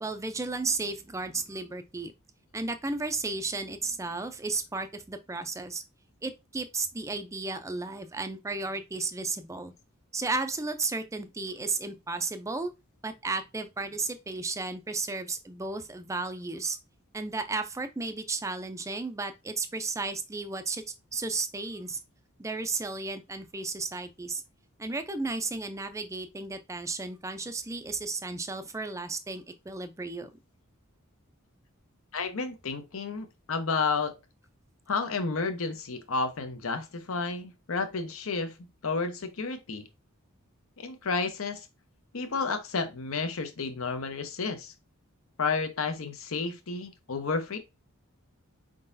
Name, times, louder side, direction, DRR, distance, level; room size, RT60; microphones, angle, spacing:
voice 1, 0.0-2.1 2.5-5.8 6.2-9.7 10.1-12.7 13.0-16.8 17.1-20.8 21.1-22.0 22.4-24.4 24.8-30.3, right 3 dB, 15° right, 0.4 m, -33 dB
voice 2, 32.1-34.1 34.9-38.5 38.8-39.9 40.8-41.7 42.1-44.7 45.4-47.6, left 4 dB, 70° left, 0.8 m, -31 dB
4.8 x 3.8 x 2.6 m
head